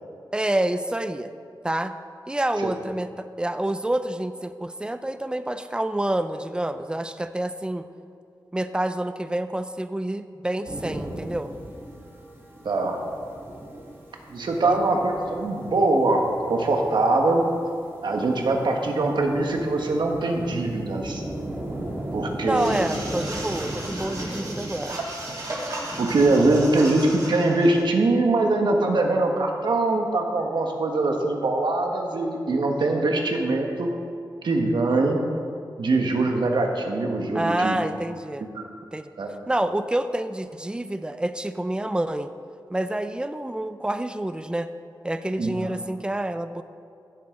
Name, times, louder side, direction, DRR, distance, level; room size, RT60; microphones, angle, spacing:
voice 1, 0.3-1.3 1.6-1.9 2.3-7.9 8.5-11.5 14.6-14.8 22.4-25.0 37.3-38.4 38.9-39.1 39.5-42.3 42.7-44.7 45.0-46.6, right 1 dB, 10° right, 10 dB, 0.5 m, -28 dB
sound 1, 10.6-27.0, right 1 dB, 30° right, 2.2 m, -37 dB
voice 2, 12.6-13.0 14.3-17.4 18.0-21.2 22.1-22.8 26.0-33.9 34.4-35.2 35.8-37.8 38.5-38.6 39.2-39.3 45.4-45.5, right 2 dB, 75° right, 2 dB, 1.4 m, -22 dB
sound 2, 22.5-27.8, right 1 dB, 50° right, 2.8 m, -35 dB
16.0 x 7.8 x 3.8 m, 2.4 s
wide cardioid pair, 85°, 8 cm